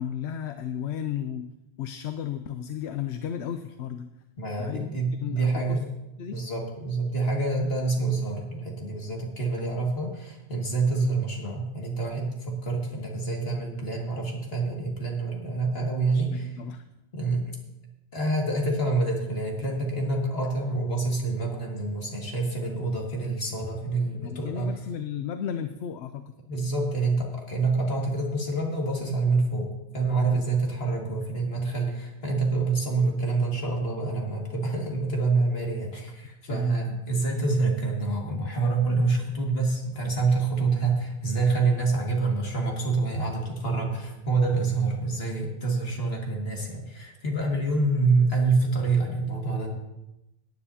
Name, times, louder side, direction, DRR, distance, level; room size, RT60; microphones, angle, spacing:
voice 1, 0.0-1.5 1.8-4.1 4.6-4.9 5.2-5.8 6.2-6.4 15.8-16.8 24.2-26.3 30.3-30.4 36.4-36.8, left 9 dB, 85° left, 9 dB, 0.9 m, -34 dB
voice 2, 4.4-5.9 6.3-16.5 17.1-17.4 18.1-24.7 26.5-49.7, right 3 dB, 65° left, -1 dB, 2.3 m, -27 dB
18.5 x 9.5 x 2.8 m, 0.94 s
omnidirectional pair, 1.1 m